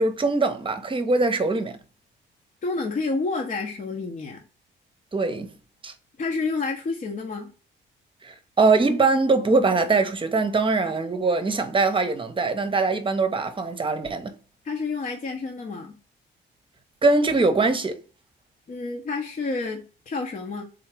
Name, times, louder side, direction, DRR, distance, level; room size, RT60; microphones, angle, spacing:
voice 1, 0.0-1.8 5.1-5.5 5.8-5.9 8.2-14.3 17.0-18.0, right 3 dB, 25° right, 0.8 m, -22 dB
voice 2, 2.6-4.4 6.2-7.5 14.6-16.0 18.7-20.6, left 3 dB, 40° left, 0.8 m, -29 dB
3.7 x 2.8 x 4.7 m
cardioid pair, 90°, 20 cm